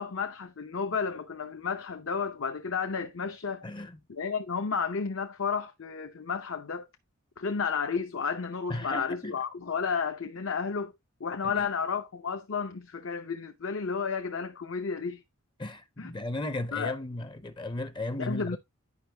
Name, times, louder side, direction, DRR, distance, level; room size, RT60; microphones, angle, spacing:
voice 1, 0.0-3.7 4.1-6.9 7.4-10.9 11.2-15.2 16.0-16.1 16.7-16.9 18.3-18.6, left 5 dB, 65° left, 0.8 m, -32 dB
voice 2, 3.6-4.0 8.7-9.4 11.4-11.7 15.6-18.6, left 2 dB, 20° left, 0.6 m, -35 dB
9.7 x 5.5 x 3.3 m
head